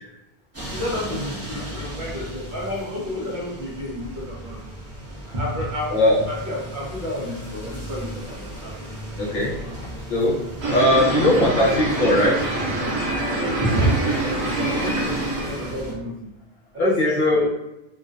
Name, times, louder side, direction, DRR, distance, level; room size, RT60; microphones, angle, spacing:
sound 1, 0.5-15.9, right 1 dB, 20° right, 0.5 m, -36 dB
voice 1, 0.7-4.6 5.3-6.0 6.2-8.7 9.2-9.8 10.9-11.3 13.4-16.3 16.7-17.5, equal, 55° right, -4 dB, 0.8 m, -29 dB
voice 2, 9.2-9.5 10.1-10.4 10.7-12.5 16.8-17.4, left 1 dB, 55° left, -6 dB, 0.7 m, -19 dB
sound 2, 10.6-15.8, right 2 dB, 80° right, 1.0 m, -25 dB
2.4 x 2.1 x 2.4 m, 0.94 s
omnidirectional pair, 1.1 m